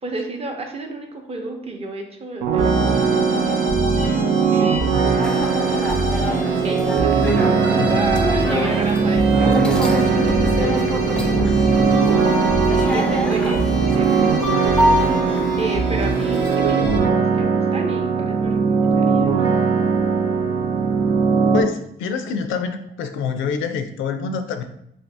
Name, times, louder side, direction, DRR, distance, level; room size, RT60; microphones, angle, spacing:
voice 1, 0.0-3.8 4.5-4.9 5.5-5.9 6.2-9.6 10.0-11.6 12.5-14.2 15.3-19.3, right 2 dB, 30° right, 2 dB, 0.6 m, -32 dB
sound 1, 2.4-21.6, right 5 dB, 85° right, 0.5 m, -20 dB
sound 2, 2.5-17.0, right 1 dB, 65° right, 1.0 m, -25 dB
sound 3, 5.2-16.7, left 1 dB, 5° left, 0.3 m, -27 dB
voice 2, 7.7-8.3 11.2-11.7 21.5-24.7, left 5 dB, 80° left, 8 dB, 0.4 m, -27 dB
2.7 x 2.7 x 3.3 m, 0.75 s
cardioid pair, 90°, 20 cm